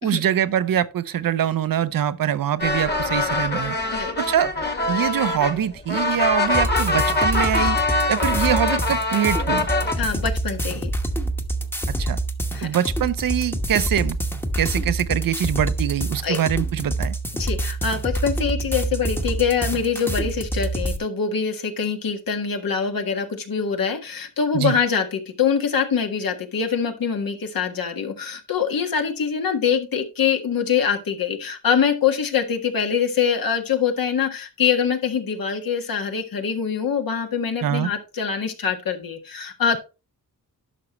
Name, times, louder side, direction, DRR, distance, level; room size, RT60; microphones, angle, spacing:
voice 1, 0.0-3.8 4.2-4.5 4.9-7.8 8.1-9.7 12.0-12.2 12.6-14.2 14.6-17.2 24.5-24.8 37.6-37.9, right 10 dB, 65° right, 0.7 m, -23 dB
sound 1, 2.6-9.9, left 2 dB, 30° left, 1.6 m, -23 dB
sound 2, 6.5-21.0, right 1 dB, 5° left, 1.0 m, -26 dB
voice 2, 10.0-10.9 12.5-12.7 16.2-16.4 17.4-39.8, left 7 dB, 70° left, 1.6 m, -24 dB
11.0 x 6.0 x 3.1 m
wide cardioid pair, 100°, 36 cm